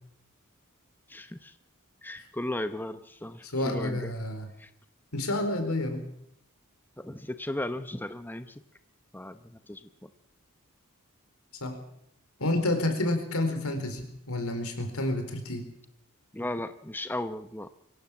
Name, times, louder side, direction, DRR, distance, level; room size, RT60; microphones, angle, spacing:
voice 1, 1.1-1.5 2.0-4.1 4.6-4.7 7.0-8.5 9.1-10.1 16.3-17.7, left 1 dB, 10° left, 10 dB, 0.8 m, -36 dB
voice 2, 3.4-4.5 5.1-6.0 11.6-11.8 12.4-15.7, left 1 dB, 90° left, 7 dB, 4.4 m, -29 dB
24.5 x 16.0 x 7.4 m, 0.74 s
head